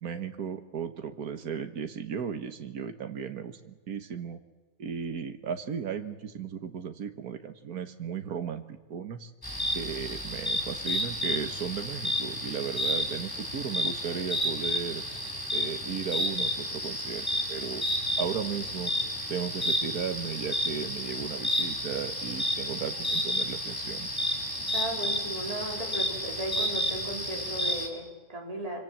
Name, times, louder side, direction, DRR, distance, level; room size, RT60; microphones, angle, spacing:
voice 1, 0.0-4.4 4.8-9.3 9.7-15.0 15.5-17.9 18.2-18.9 19.3-24.1, right 7 dB, 85° right, 7 dB, 1.8 m, -35 dB
sound 1, 9.4-27.9, equal, 15° left, 3.9 m, -31 dB
voice 2, 24.7-28.8, right 1 dB, 25° right, 0 dB, 4.7 m, -36 dB
26.0 x 25.5 x 7.5 m, 1.2 s
omnidirectional pair, 1.6 m